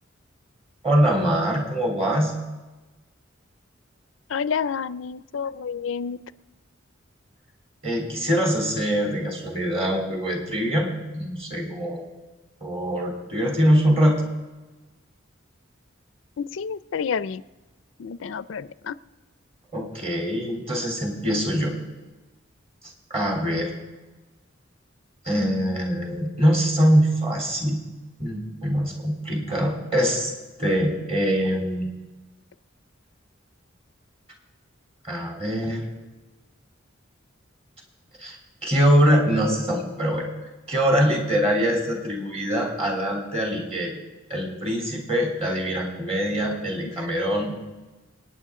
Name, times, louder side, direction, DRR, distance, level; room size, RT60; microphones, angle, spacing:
voice 1, 0.8-2.3 7.8-12.0 12.6-14.2 19.7-21.7 23.1-23.7 25.2-27.8 28.2-30.3 30.6-31.9 35.1-35.8 38.2-38.4 38.6-40.3 40.7-44.0 44.3-47.6, equal, 30° right, 0 dB, 3.4 m, -23 dB
voice 2, 4.3-6.2 16.4-17.4 18.0-18.9, left 6 dB, 75° left, 16 dB, 0.4 m, -29 dB
28.5 x 9.6 x 3.7 m, 1.2 s
head